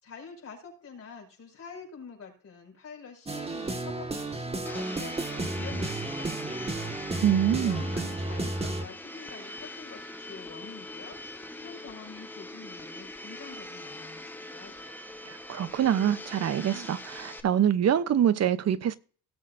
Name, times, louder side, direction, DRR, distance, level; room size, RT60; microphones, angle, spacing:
voice 1, 0.0-6.9 7.5-14.9, left 5 dB, 45° left, 5.5 m, -47 dB
sound 1, 3.3-8.8, right 2 dB, 20° right, 1.8 m, -33 dB
Domestic sounds home sounds, 4.6-17.4, left 1 dB, 5° left, 1.1 m, -42 dB
voice 2, 7.2-7.8 15.3-19.0, right 9 dB, 50° right, 0.8 m, -25 dB
17.5 x 7.6 x 2.6 m
cardioid pair, 90°, 34 cm